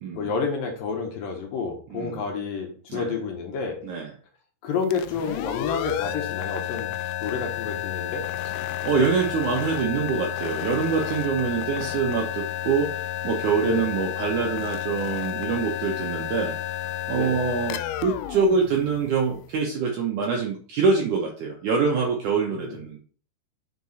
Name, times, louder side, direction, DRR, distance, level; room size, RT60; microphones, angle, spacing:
voice 1, 0.1-3.8 4.6-6.9 7.2-8.2 13.6-13.9 17.1-17.4 22.5-22.8, left 5 dB, 70° left, 2 dB, 2.6 m, -29 dB
voice 2, 1.9-2.2 2.9-3.1 3.8-4.1 8.8-16.8 17.1-23.0, right 5 dB, 75° right, 0 dB, 1.9 m, -25 dB
sound 1, 4.8-19.5, left 12 dB, 85° left, 2.5 m, -31 dB
6.6 x 4.6 x 4.1 m, 0.43 s
omnidirectional pair, 4.6 m